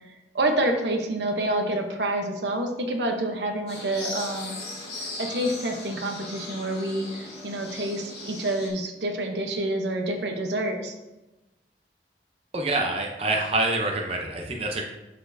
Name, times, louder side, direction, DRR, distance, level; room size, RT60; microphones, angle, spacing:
voice 1, 0.3-4.6 5.0-10.9, right 1 dB, 80° right, 4 dB, 1.0 m, -28 dB
sound 1, 3.7-8.7, left 2 dB, 35° left, 2.5 m, -38 dB
voice 2, 12.5-14.8, right 2 dB, 35° right, 1 dB, 0.7 m, -26 dB
11.5 x 4.4 x 2.7 m, 1.0 s
head